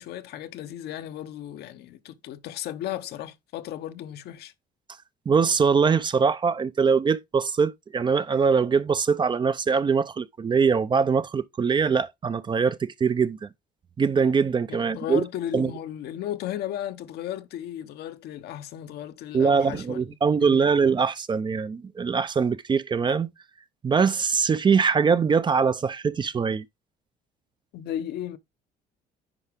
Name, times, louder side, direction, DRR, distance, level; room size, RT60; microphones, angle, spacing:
voice 1, 0.0-4.5 14.7-20.0 20.4-20.6 27.7-28.4, left 11 dB, 70° left, 0.9 m, -35 dB
voice 2, 5.3-13.5 14.0-15.2 15.5-15.7 19.3-23.3 23.8-26.6, right 5 dB, 25° right, 0.5 m, -22 dB
9.9 x 4.8 x 3.5 m
cardioid pair, 110°, 17 cm